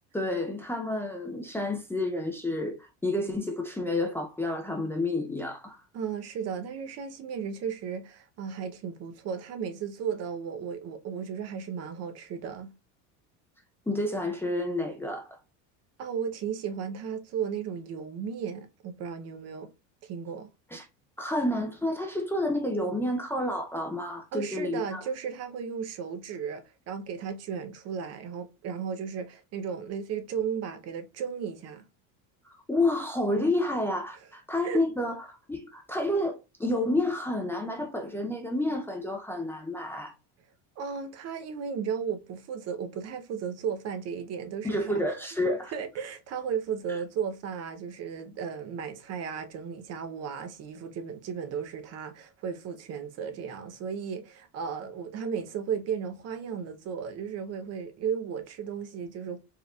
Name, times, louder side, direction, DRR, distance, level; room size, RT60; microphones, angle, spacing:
voice 1, 0.1-5.8 13.9-15.4 20.7-20.9 21.2-25.0 32.7-40.1 44.6-45.7, left 1 dB, 5° left, 0.5 m, -30 dB
voice 2, 5.9-12.7 16.0-19.7 20.0-20.5 24.3-31.8 34.6-34.8 40.8-44.9 45.7-59.4, right 7 dB, 40° right, 0.7 m, -35 dB
4.5 x 3.4 x 2.3 m
supercardioid pair, 130°, 37 cm